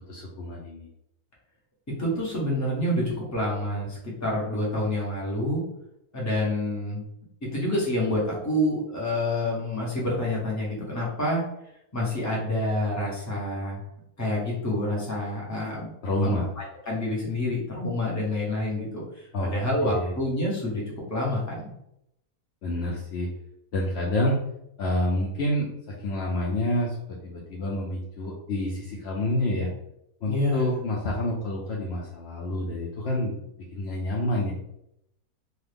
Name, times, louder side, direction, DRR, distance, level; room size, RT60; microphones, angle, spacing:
voice 1, 0.1-0.9 16.0-16.5 19.3-19.5 19.8-20.2 22.6-23.3 23.7-24.4 24.8-29.7 30.2-33.4 33.7-34.5, left 1 dB, 85° left, -3 dB, 0.5 m, -28 dB
voice 2, 2.0-5.6 6.1-7.0 7.5-11.4 11.9-13.8 14.2-15.9 16.2-16.3 16.9-20.8 21.1-21.6 30.3-30.6, left 1 dB, 15° left, -4 dB, 0.5 m, -27 dB
2.8 x 2.3 x 3.3 m, 0.78 s
omnidirectional pair, 1.7 m